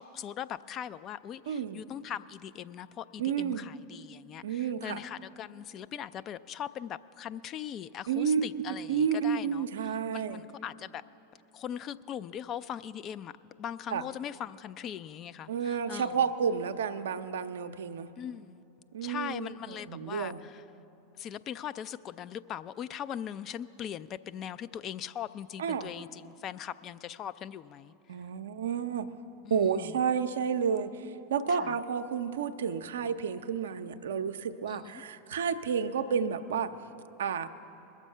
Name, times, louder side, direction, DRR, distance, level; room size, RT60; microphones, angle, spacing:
voice 1, 0.0-11.0 11.5-16.2 18.2-18.6 19.0-20.6 21.1-27.9 29.4-30.0 31.5-31.8 34.7-35.0, left 9 dB, 40° left, 0.3 m, -40 dB
voice 2, 1.5-1.8 3.2-3.7 4.4-5.0 8.1-10.4 13.9-14.0 15.5-18.1 18.9-20.4 25.6-25.9 28.1-29.1 29.5-36.7 37.2-37.5, right 7 dB, 75° right, 0.5 m, -31 dB
21.0 x 7.3 x 5.5 m
hypercardioid pair, 90°, 0 cm